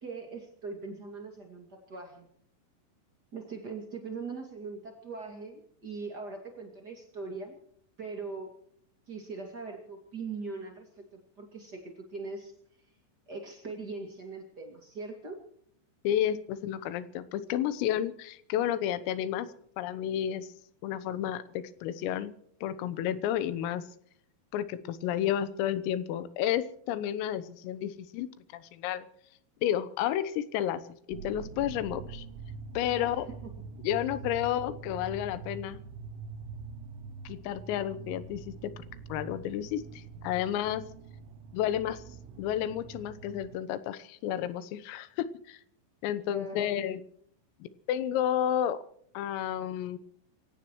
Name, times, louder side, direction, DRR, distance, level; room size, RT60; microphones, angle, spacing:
voice 1, 0.0-2.3 3.3-7.5 8.0-8.5 9.1-12.5 13.3-15.4 32.9-33.5 46.2-46.8, right 4 dB, 45° right, 3 dB, 1.3 m, -41 dB
voice 2, 16.1-19.5 19.8-20.5 20.8-22.4 22.6-23.9 24.5-29.1 29.6-32.3 32.8-33.3 33.8-35.8 37.3-40.9 41.5-42.0 42.4-45.6 46.0-47.0 47.9-48.8 49.2-50.0, left 11 dB, 85° left, 14 dB, 3.7 m, -31 dB
sound 1, 31.1-43.6, right 5 dB, 80° right, 3.7 m, -44 dB
27.0 x 16.5 x 3.1 m, 0.65 s
omnidirectional pair, 5.9 m